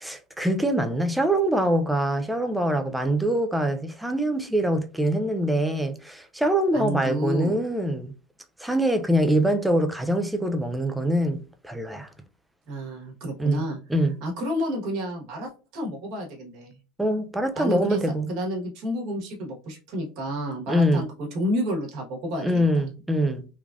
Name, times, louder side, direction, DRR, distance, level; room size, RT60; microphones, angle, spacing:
voice 1, 0.0-8.1 8.6-12.1 13.4-13.6 13.9-14.2 17.0-18.3 20.7-21.1 22.4-23.4, right 1 dB, 5° right, 0.3 m, -24 dB
voice 2, 6.7-7.6 12.7-13.8 14.2-16.7 17.5-18.0 18.3-22.6, equal, 55° right, 1.1 m, -30 dB
3.1 x 2.4 x 2.3 m
cardioid pair, 155°, 0 cm